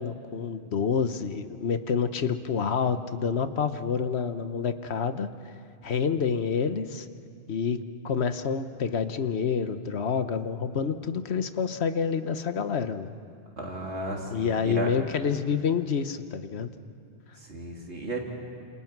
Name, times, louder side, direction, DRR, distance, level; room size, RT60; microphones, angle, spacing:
voice 1, 0.0-5.3 5.8-7.1 7.5-7.8 8.0-13.1 14.3-16.7, left 6 dB, 75° left, 10 dB, 1.3 m, -28 dB
voice 2, 13.6-14.9 17.4-18.2, right 2 dB, 90° right, -1 dB, 3.7 m, -34 dB
29.0 x 27.5 x 6.0 m, 2.4 s
omnidirectional pair, 1.1 m